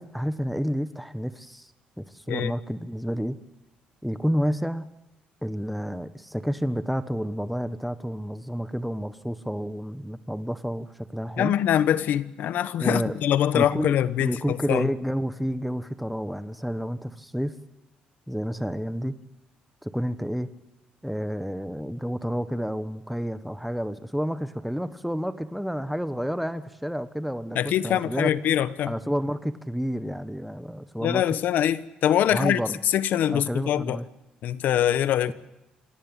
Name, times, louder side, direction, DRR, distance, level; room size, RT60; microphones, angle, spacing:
voice 1, 0.0-1.7 2.0-3.4 4.0-4.9 5.4-11.5 12.8-13.1 13.5-17.6 18.3-19.1 19.8-20.5 21.0-28.3 28.9-31.2 32.3-32.8 33.3-34.1, equal, ahead, 12 dB, 1.2 m, -30 dB
voice 2, 11.4-14.9 27.5-28.9 31.0-34.0 34.4-35.3, left 10 dB, 70° left, 15 dB, 1.1 m, -24 dB
25.0 x 17.5 x 9.0 m, 0.95 s
supercardioid pair, 70°, 3 cm